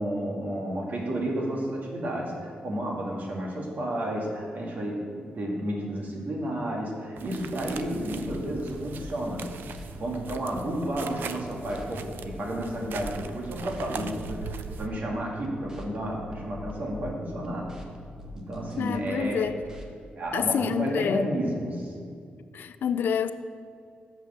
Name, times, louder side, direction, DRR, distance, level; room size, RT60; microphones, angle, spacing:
voice 1, 0.0-9.6 10.0-17.7 18.3-19.5 20.2-21.9, right 1 dB, 55° right, -2 dB, 2.0 m, -31 dB
sound 1, 7.2-14.9, right 6 dB, 80° right, 0.4 m, -41 dB
sound 2, 7.6-11.0 11.4-15.0 15.4-19.9, left 1 dB, 20° right, 1.3 m, -44 dB
voice 2, 18.8-19.6 20.3-21.2 22.5-23.3, left 7 dB, 75° left, 11 dB, 0.4 m, -27 dB
6.7 x 5.8 x 7.0 m, 2.3 s
cardioid pair, 85°, 3 cm